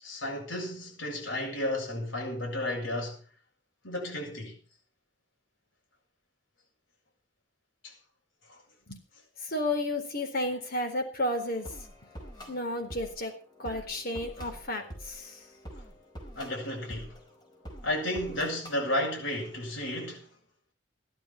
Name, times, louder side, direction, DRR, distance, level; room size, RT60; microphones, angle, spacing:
voice 1, 0.0-3.2 3.8-4.5 7.8-7.9 8.5-8.6 16.3-17.2 17.8-20.3, left 1 dB, 90° left, 7.2 m, -33 dB
voice 2, 9.4-11.7 12.5-13.3 13.6-15.4, left 1 dB, 55° left, 4.1 m, -32 dB
sound 1, 11.3-18.8, equal, 25° left, 4.8 m, -46 dB
15.0 x 12.0 x 6.0 m
head